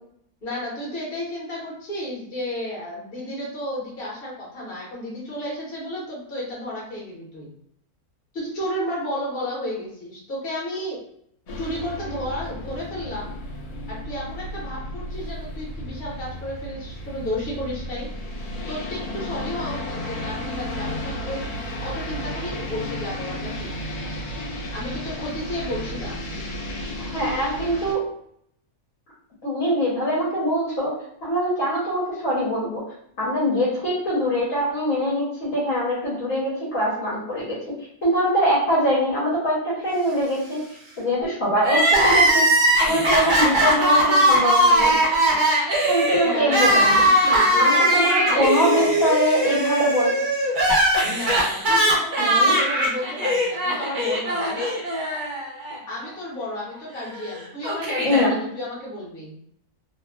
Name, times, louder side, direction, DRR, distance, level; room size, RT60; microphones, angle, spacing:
voice 1, 0.4-7.5 8.3-11.0 11.5-13.3 13.9-18.1 18.7-21.4 21.8-23.8 24.7-26.2 46.2-48.9 51.0-54.8 55.9-59.4, left 1 dB, 40° left, -4 dB, 1.0 m, -32 dB
sound 1, 11.5-27.9, left 1 dB, 80° left, 1.2 m, -33 dB
voice 2, 27.1-28.0 29.4-32.8 33.2-37.6 38.0-40.6 41.0-42.5 42.8-45.0 45.8-46.9 47.6-50.2 52.2-52.6 58.0-58.3, equal, 60° left, -6 dB, 1.2 m, -23 dB
Crying sobbing, 41.6-55.8 56.0-56.1 57.1-58.3, right 1 dB, 50° right, 0.5 m, -20 dB
2.9 x 2.2 x 2.2 m, 0.69 s
omnidirectional pair, 1.6 m